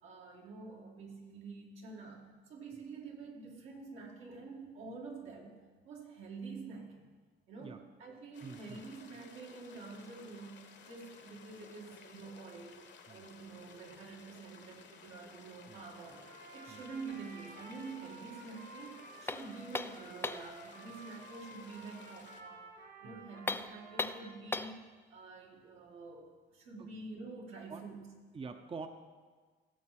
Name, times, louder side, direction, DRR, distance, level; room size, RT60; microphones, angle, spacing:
voice 1, 0.0-5.6 5.8-7.1 7.5-22.7 23.0-28.1, right 4 dB, 85° right, -1 dB, 2.2 m, -48 dB
sound 1, 8.3-22.4, left 6 dB, 60° left, 1.1 m, -56 dB
voice 2, 8.4-8.8 13.1-13.2 15.7-15.8 16.7-16.8 23.0-23.3 26.8-26.9 27.7-27.8 28.3-28.9, right 4 dB, 25° right, 7 dB, 0.6 m, -46 dB
Trumpet, 16.0-24.4, right 3 dB, 60° right, 2.3 m, -53 dB
sound 2, 19.3-20.6 23.4-24.8, left 3 dB, 10° left, 0.4 m, -38 dB
16.5 x 7.3 x 4.3 m, 1.5 s
cardioid pair, 90°, 20 cm